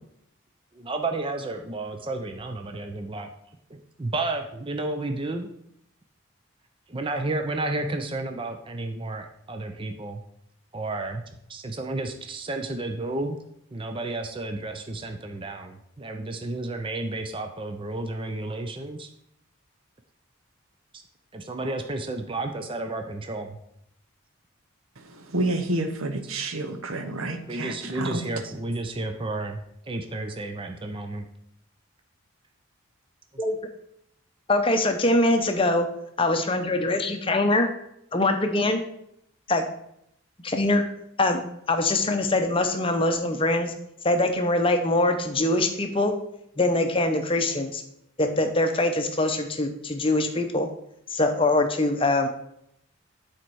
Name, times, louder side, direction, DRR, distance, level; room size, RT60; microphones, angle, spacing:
voice 1, 0.7-3.3 3.7-5.5 6.9-10.2 10.7-11.2 11.5-13.4 13.7-19.1 20.9-21.0 21.3-23.6 27.5-31.3, right 2 dB, 25° right, 5 dB, 0.5 m, -32 dB
voice 2, 25.3-28.2, right 2 dB, 75° right, 7 dB, 0.9 m, -29 dB
voice 3, 34.5-35.9 36.2-37.7 38.1-38.8 39.5-39.7 40.4-40.8 41.2-43.7 44.0-46.1 46.6-47.8 48.2-50.7 51.1-52.3, left 2 dB, 25° left, 6 dB, 0.7 m, -23 dB
8.6 x 4.4 x 4.6 m, 0.76 s
head